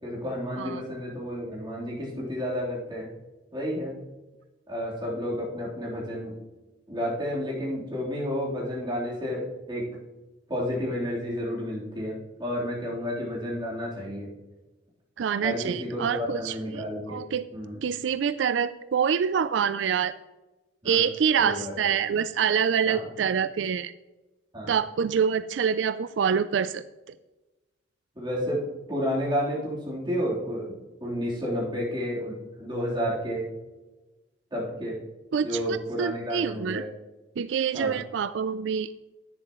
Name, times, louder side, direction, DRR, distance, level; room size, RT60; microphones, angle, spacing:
voice 1, 0.0-3.1 3.5-4.0 4.7-6.4 6.9-9.9 10.5-14.3 15.4-17.2 17.5-17.8 20.8-21.0 21.4-21.9 22.9-23.1 24.5-24.7 28.2-33.5 34.5-35.0 35.4-36.9 37.7-38.0, equal, 25° right, -5 dB, 3.6 m, -31 dB
voice 2, 15.2-17.4 17.8-20.1 20.8-23.9 24.7-27.1 35.3-36.8 37.4-38.9, right 7 dB, 90° right, 14 dB, 0.4 m, -26 dB
10.5 x 9.9 x 3.1 m, 1.1 s
head